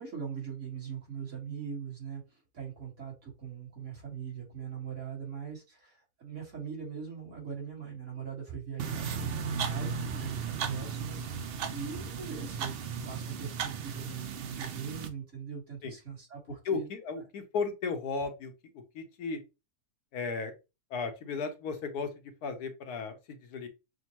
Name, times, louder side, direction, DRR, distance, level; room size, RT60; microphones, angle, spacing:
voice 1, 0.0-2.2 2.5-11.2 11.7-12.8 13.1-16.9, right 7 dB, 50° right, -2 dB, 1.9 m, -41 dB
sound 1, 8.8-15.1, right 6 dB, 85° right, 0.5 m, -35 dB
voice 2, 16.6-18.5 18.9-19.4 20.1-20.5 20.9-22.1 22.4-23.1 23.5-23.7, left 4 dB, 75° left, 6 dB, 1.2 m, -34 dB
6.2 x 2.2 x 2.9 m, 0.27 s
omnidirectional pair, 1.7 m